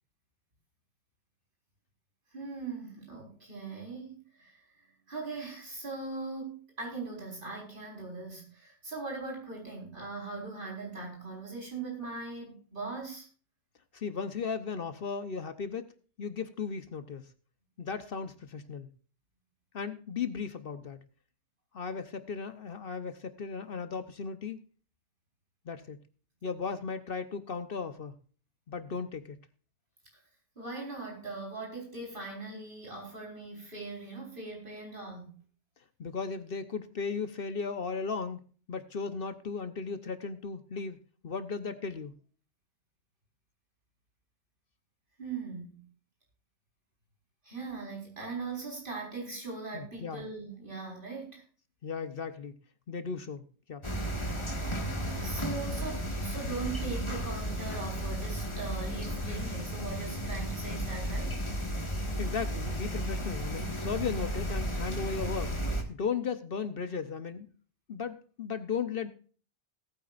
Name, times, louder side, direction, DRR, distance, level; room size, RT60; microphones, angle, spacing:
voice 1, 2.3-4.6 5.1-13.3 30.6-35.4 45.2-45.9 47.4-51.4 55.2-61.4, right 3 dB, 50° right, 0 dB, 4.9 m, -40 dB
voice 2, 13.9-15.9 16.2-17.2 17.8-18.9 19.7-21.0 21.7-24.6 25.7-26.0 26.4-28.2 28.7-29.4 36.0-38.4 38.7-41.0 41.2-42.1 49.7-50.2 51.8-52.6 52.9-53.9 62.0-65.5 65.9-67.5 67.9-69.1, left 5 dB, 60° left, 11 dB, 1.1 m, -36 dB
sound 1, 53.8-65.8, equal, 25° left, 1.8 m, -34 dB
18.5 x 9.2 x 2.5 m, 0.39 s
omnidirectional pair, 1.1 m